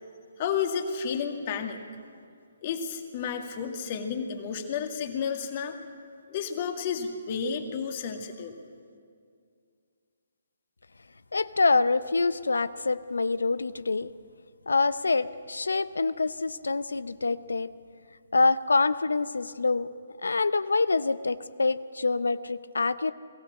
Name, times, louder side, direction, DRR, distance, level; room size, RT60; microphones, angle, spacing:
voice 1, 0.4-1.8 2.6-5.8 6.3-8.6, left 6 dB, 40° left, 4 dB, 2.1 m, -31 dB
voice 2, 11.3-14.1 14.7-17.7 18.3-19.9 20.2-23.1, left 3 dB, 75° left, 16 dB, 0.6 m, -26 dB
22.5 x 15.5 x 7.5 m, 2.2 s
figure-of-eight pair, 135°, 0 cm